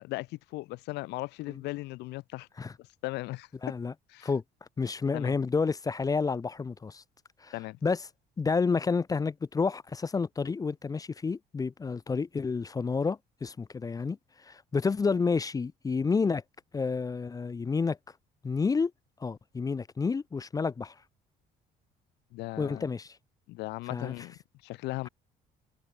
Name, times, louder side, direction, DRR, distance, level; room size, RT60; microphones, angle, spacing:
voice 1, 0.0-2.5 2.8-3.7 4.1-4.3 5.1-5.3 7.5-7.8 22.3-22.9 23.5-25.1, left 20 dB, 85° left, 0.6 m, -38 dB
voice 2, 3.6-3.9 4.2-4.4 4.8-7.0 7.4-7.5 7.8-8.0 8.4-14.2 14.4-16.4 16.7-18.0 18.4-18.9 19.2-20.9 22.6-23.2 23.9-24.1, left 4 dB, 20° left, 0.5 m, -29 dB
cardioid pair, 110°, 17 cm